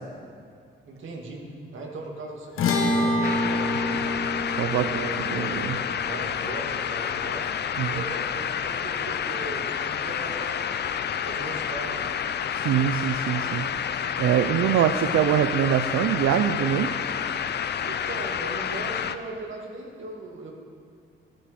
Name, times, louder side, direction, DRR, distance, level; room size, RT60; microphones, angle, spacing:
voice 1, 0.8-4.1 4.7-7.5 7.9-10.6 11.1-12.2 17.8-20.5, right 2 dB, 70° right, 0 dB, 2.4 m, -38 dB
sound 1, 2.6-9.1, left 2 dB, 85° left, 1.2 m, -29 dB
sound 2, 3.2-19.2, left 8 dB, 55° left, 0.6 m, -29 dB
voice 2, 4.6-5.8 7.8-7.9 12.5-13.6 14.2-16.9, right 10 dB, 85° right, 8 dB, 0.6 m, -24 dB
16.0 x 13.0 x 4.3 m, 2.3 s
cardioid pair, 100°, 21 cm